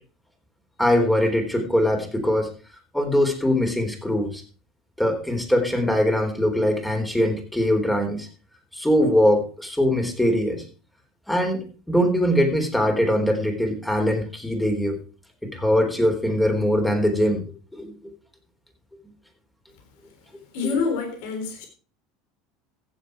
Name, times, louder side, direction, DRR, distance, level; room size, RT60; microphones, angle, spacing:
voice 1, 0.8-2.5 2.9-4.4 5.0-8.3 8.7-10.6 11.3-15.0 15.4-17.4 17.7-17.9 20.6-20.7, equal, 5° left, 3.8 m, -22 dB
voice 2, 20.5-21.7, left 5 dB, 65° left, 3.7 m, -26 dB
15.5 x 7.4 x 4.7 m
hypercardioid pair, 80°, 0 cm